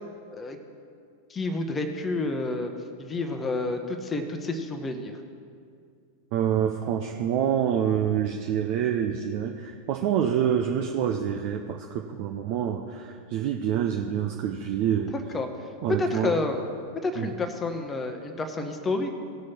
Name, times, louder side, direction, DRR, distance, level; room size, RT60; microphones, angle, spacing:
voice 1, 1.3-2.7 3.0-5.1 15.1-15.5 15.9-16.6 17.0-19.1, left 3 dB, 15° left, 5 dB, 1.0 m, -29 dB
voice 2, 6.3-15.1 15.8-16.3 17.2-17.3, right 9 dB, 45° right, 3 dB, 0.6 m, -27 dB
18.0 x 6.3 x 4.3 m, 2.2 s
figure-of-eight pair, 90°, 0 cm